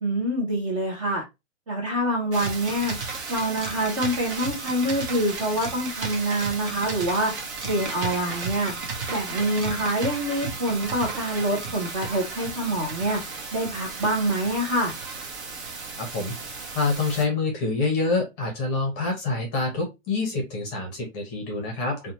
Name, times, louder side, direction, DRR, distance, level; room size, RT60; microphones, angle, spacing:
voice 1, 0.0-1.2 1.7-2.9 3.3-7.3 7.6-8.7 9.1-13.2 13.5-14.9, right 1 dB, 25° right, 0.5 m, -26 dB
sound 1, 2.3-17.2, right 4 dB, 55° right, 0.9 m, -34 dB
voice 2, 16.0-16.3 16.7-22.1, left 3 dB, 20° left, 0.6 m, -26 dB
2.5 x 2.1 x 2.8 m
hypercardioid pair, 155°, 39 cm